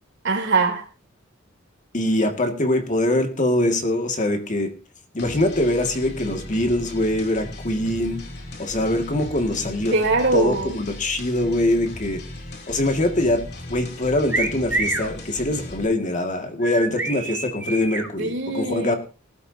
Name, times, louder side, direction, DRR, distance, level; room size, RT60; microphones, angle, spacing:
voice 1, 0.2-0.9 9.9-10.8 18.2-19.0, right 3 dB, 65° right, 3 dB, 3.3 m, -22 dB
voice 2, 1.9-4.7 5.1-8.2 8.6-9.9 10.3-12.2 12.7-19.0, left 1 dB, 40° left, 5 dB, 2.1 m, -23 dB
sound 1, 5.2-15.8, left 1 dB, 55° left, 3.1 m, -37 dB
sound 2, 14.3-15.1 16.6-18.1, right 3 dB, 10° right, 3.0 m, -26 dB
19.5 x 12.0 x 2.8 m, 0.35 s
head